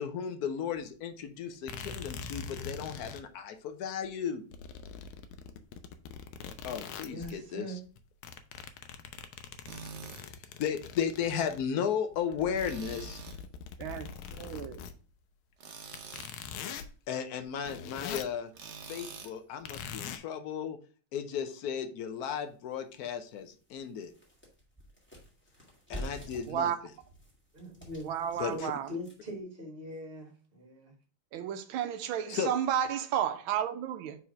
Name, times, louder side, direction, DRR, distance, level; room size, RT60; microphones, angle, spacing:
voice 1, 0.0-4.4 6.6-7.7 10.6-13.2 17.1-18.5 18.9-20.8 21.1-24.1 25.9-26.7 28.4-28.7 32.3-32.5, left 7 dB, 65° left, 0.9 m, -35 dB
sound 1, 0.8-0.9 1.7-3.2 4.0-4.1 4.5-7.4 7.9-11.7 12.1-14.9 15.9-16.9 17.4-18.4 19.6-20.2, left 6 dB, 85° left, 1.5 m, -43 dB
voice 2, 7.1-7.8 27.5-30.9, left 1 dB, 30° right, 1.8 m, -42 dB
Tools, 9.7-10.3 12.6-13.4 15.6-16.4 18.5-19.4, right 5 dB, 55° right, 0.7 m, -45 dB
voice 3, 14.3-14.8 26.5-26.8 28.0-28.9 31.3-34.2, right 9 dB, 75° right, 1.5 m, -32 dB
sound 2, 22.3-22.4 22.9-23.0 23.4-29.4, equal, 5° left, 1.7 m, -47 dB
4.7 x 4.3 x 5.1 m
omnidirectional pair, 2.3 m